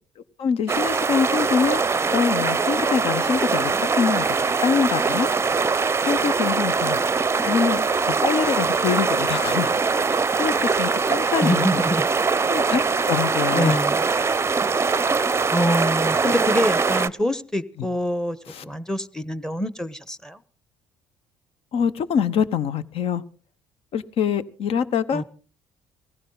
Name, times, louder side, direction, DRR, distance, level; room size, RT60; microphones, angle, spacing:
voice 1, 0.4-1.8 2.1-4.2 4.6-5.3 6.0-7.0 7.4-7.8 8.2-9.7 10.1-11.8 12.4-12.8 13.1-13.8 18.5-18.6 21.7-23.2 23.9-25.2, left 7 dB, 60° left, 1.0 m, -24 dB
sound 1, 0.7-17.1, right 4 dB, 25° right, 0.6 m, -22 dB
voice 2, 11.4-12.1 13.5-14.1 15.5-18.4 18.6-20.4 25.1-25.2, equal, 5° left, 1.1 m, -25 dB
19.0 x 15.5 x 3.9 m
hypercardioid pair, 60°, 11 cm